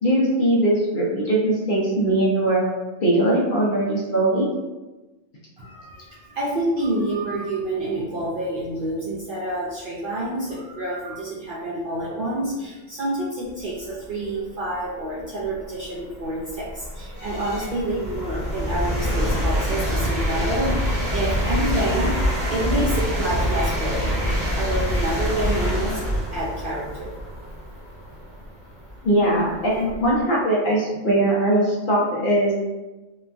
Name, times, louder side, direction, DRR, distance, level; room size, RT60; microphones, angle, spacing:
voice 1, 0.0-2.6 3.0-4.5 29.0-32.5, right 1 dB, 55° left, -4 dB, 0.6 m, -20 dB
voice 2, 5.6-24.3 24.6-26.1 26.3-27.1, right 1 dB, 60° right, -6 dB, 0.6 m, -28 dB
sound 1, 14.8-14.9 15.5-30.2, equal, 45° right, 0.9 m, -26 dB
3.0 x 2.2 x 2.5 m, 1.1 s
omnidirectional pair, 1.3 m